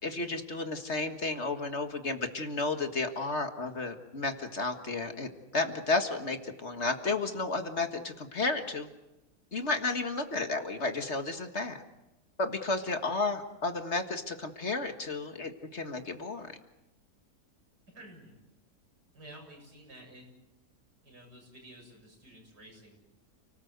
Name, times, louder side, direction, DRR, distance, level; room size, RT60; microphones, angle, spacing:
voice 1, 0.0-8.9 9.5-11.8 12.4-16.5, left 3 dB, 45° left, 6 dB, 1.9 m, -32 dB
voice 2, 17.9-18.4 19.1-20.3 21.0-23.0, right 1 dB, 85° right, 1 dB, 8.1 m, -52 dB
30.0 x 19.0 x 8.1 m, 0.99 s
omnidirectional pair, 1.7 m